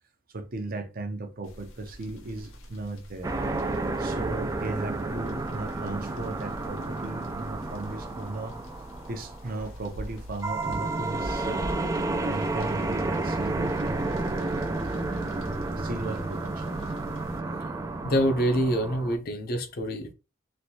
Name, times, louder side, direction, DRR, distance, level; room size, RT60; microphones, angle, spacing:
voice 1, 0.3-3.3 4.0-8.6 9.1-11.7 12.2-14.4 15.8-16.8, right 2 dB, 45° right, 0.6 m, -36 dB
sound 1, 1.4-17.4, equal, 80° left, 0.8 m, -45 dB
sound 2, 3.2-10.1 10.4-19.2, right 2 dB, 15° right, 0.3 m, -31 dB
voice 2, 18.0-20.1, equal, 50° left, 0.6 m, -26 dB
3.2 x 2.6 x 2.7 m
head